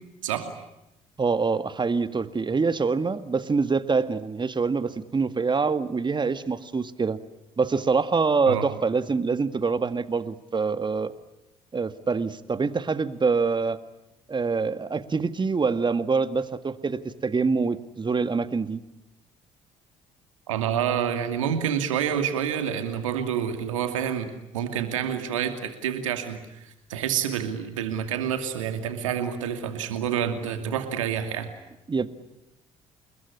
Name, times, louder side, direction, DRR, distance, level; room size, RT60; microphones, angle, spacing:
voice 1, 1.2-7.2 7.6-11.1 11.7-13.8 14.3-18.8 31.9-32.1, right 4 dB, 30° right, 12 dB, 1.9 m, -25 dB
voice 2, 20.5-31.5, right 9 dB, 85° right, 7 dB, 2.6 m, -28 dB
28.0 x 21.5 x 9.8 m, 0.90 s
hypercardioid pair, 55°, 16 cm